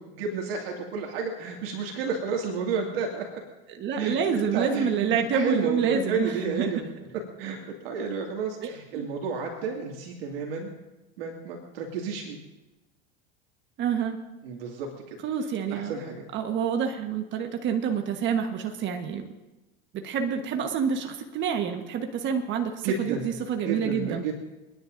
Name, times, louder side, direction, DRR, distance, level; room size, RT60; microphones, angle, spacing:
voice 1, 0.0-3.2 4.0-4.2 4.5-4.9 5.3-6.8 7.4-7.6 7.8-10.7 11.2-12.4 14.4-14.9 15.7-16.3 22.8-23.3 23.6-24.3, right 5 dB, 80° right, 0 dB, 2.3 m, -31 dB
voice 2, 3.7-6.8 8.6-9.1 13.8-14.2 15.2-16.0 16.3-19.3 20.0-24.3, right 7 dB, 40° right, 5 dB, 1.3 m, -28 dB
30.0 x 10.5 x 2.6 m, 1.1 s
supercardioid pair, 115°, 29 cm